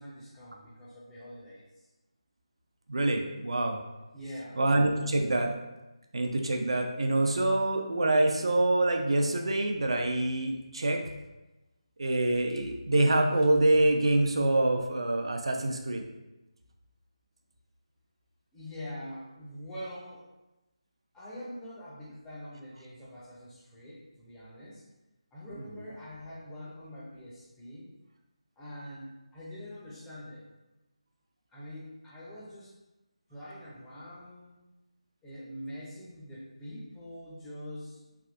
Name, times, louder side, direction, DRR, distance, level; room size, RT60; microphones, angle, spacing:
voice 1, 0.0-1.9 4.1-4.6 18.5-20.3 21.1-24.8 25.3-27.9 28.6-30.4 31.5-32.7 33.3-34.6 35.2-38.2, equal, 5° left, -8 dB, 0.5 m, -44 dB
voice 2, 2.9-3.8 4.6-5.5 6.1-11.0 12.0-16.0, right 2 dB, 60° right, 3 dB, 0.4 m, -26 dB
3.4 x 2.4 x 2.5 m, 1.0 s
figure-of-eight pair, 160°, 3 cm